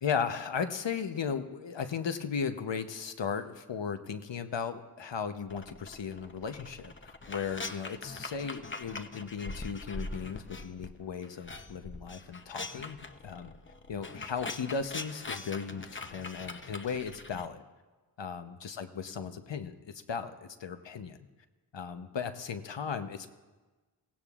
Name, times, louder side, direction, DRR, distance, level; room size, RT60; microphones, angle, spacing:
voice 1, 0.0-13.5 13.9-17.6 18.2-21.2 21.7-23.3, left 6 dB, 75° left, 8 dB, 0.9 m, -36 dB
sound 1, 5.5-10.9 11.2-17.5, left 3 dB, 25° left, 0.7 m, -42 dB
23.0 x 17.0 x 2.4 m, 1.3 s
wide cardioid pair, 55°, 43 cm